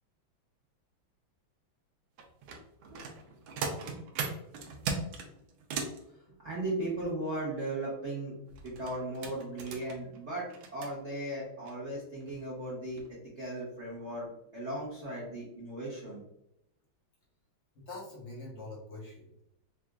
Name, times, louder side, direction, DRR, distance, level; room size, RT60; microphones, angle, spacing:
sound 1, 2.2-6.0 8.5-10.9 11.7-11.8 12.2-12.4 12.8-13.1 13.4-13.5, right 4 dB, 70° right, 1.3 m, -38 dB
voice 1, 6.4-8.3 8.6-16.2, right 1 dB, 50° right, -6 dB, 0.8 m, -37 dB
voice 2, 17.7-19.4, left 2 dB, 45° left, -3 dB, 0.9 m, -44 dB
4.9 x 2.5 x 2.2 m, 0.81 s
omnidirectional pair, 2.3 m